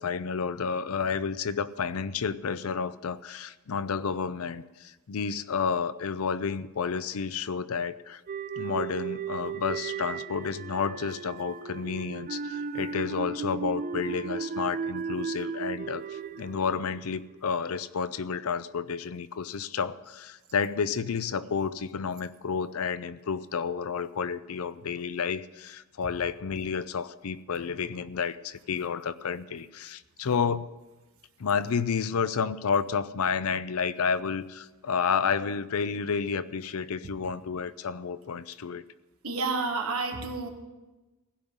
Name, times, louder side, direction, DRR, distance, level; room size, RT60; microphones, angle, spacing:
voice 1, 0.0-8.2 8.6-30.7 31.4-38.8, left 6 dB, 75° left, 15 dB, 0.5 m, -31 dB
sound 1, 8.3-17.5, right 6 dB, 40° right, 0.3 m, -35 dB
voice 2, 39.2-40.5, right 3 dB, 70° right, 3 dB, 1.7 m, -30 dB
16.0 x 5.4 x 9.5 m, 1.1 s
head